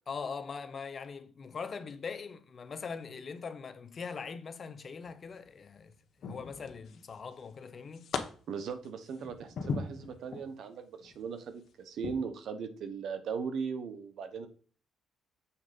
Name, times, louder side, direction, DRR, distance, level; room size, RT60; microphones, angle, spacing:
voice 1, 0.1-5.9 6.2-8.1, left 5 dB, 45° left, 0.7 m, -41 dB
sound 1, 5.0-5.5 6.2-7.1 7.5-8.2 8.7-10.5 11.0-11.2 12.0-12.1, left 5 dB, 65° left, 1.1 m, -38 dB
voice 2, 8.5-14.5, right 6 dB, 70° right, 1.1 m, -38 dB
7.1 x 3.6 x 5.2 m
cardioid pair, 90°, 0 cm